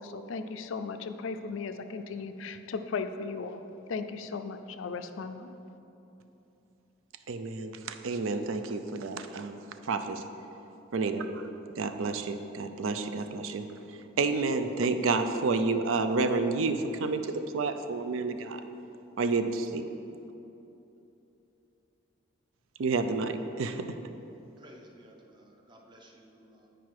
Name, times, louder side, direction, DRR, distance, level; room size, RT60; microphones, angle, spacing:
voice 1, 0.0-3.6 3.9-5.5, left 4 dB, 75° left, 9 dB, 0.4 m, -36 dB
voice 2, 7.3-10.2 10.9-11.4 11.8-13.7 14.2-17.2 17.5-18.6 19.2-19.9 22.8-23.9, right 3 dB, 75° right, 8 dB, 0.4 m, -30 dB
voice 3, 24.6-26.7, right 1 dB, 20° right, 1 dB, 0.6 m, -55 dB
9.0 x 5.0 x 4.7 m, 3.0 s
head